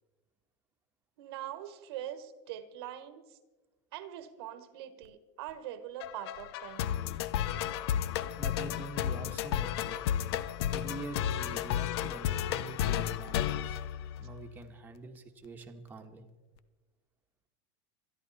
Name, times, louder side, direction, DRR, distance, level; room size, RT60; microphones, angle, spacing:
voice 1, 1.2-3.4 3.9-7.0, right 11 dB, 65° right, 12 dB, 1.4 m, -43 dB
sound 1, 6.0-14.6, left 10 dB, 70° left, 0.8 m, -33 dB
voice 2, 8.4-10.0 10.7-13.8 14.2-16.2, right 3 dB, 15° right, 3 dB, 1.4 m, -45 dB
26.5 x 11.0 x 4.2 m, 1.2 s
supercardioid pair, 160°, 14 cm